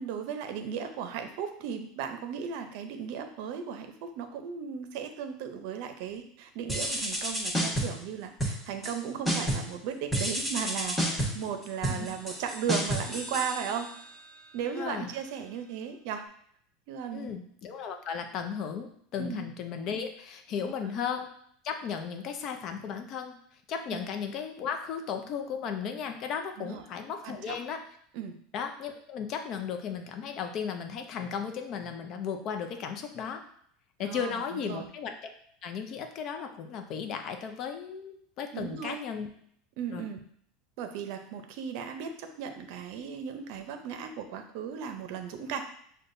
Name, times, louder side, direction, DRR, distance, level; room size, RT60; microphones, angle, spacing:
voice 1, 0.0-13.9 14.5-16.2 16.9-17.3 19.2-19.4 20.6-21.0 23.9-24.0 26.6-26.8 27.2-27.6 28.1-28.3 34.0-34.9 38.5-39.0 39.8-40.2 40.8-45.6, right 7 dB, 65° right, 7 dB, 0.6 m, -36 dB
sound 1, 6.7-8.1 8.4-9.0 9.3-9.8 10.1-14.1, equal, 5° left, 1.2 m, -31 dB
voice 2, 14.7-15.1 17.1-21.3 21.6-23.4 23.7-27.8 28.5-33.4 34.0-35.1 35.6-39.3 39.9-40.1, left 7 dB, 50° left, 5 dB, 0.6 m, -35 dB
6.4 x 2.2 x 2.6 m, 0.66 s
supercardioid pair, 120°, 0 cm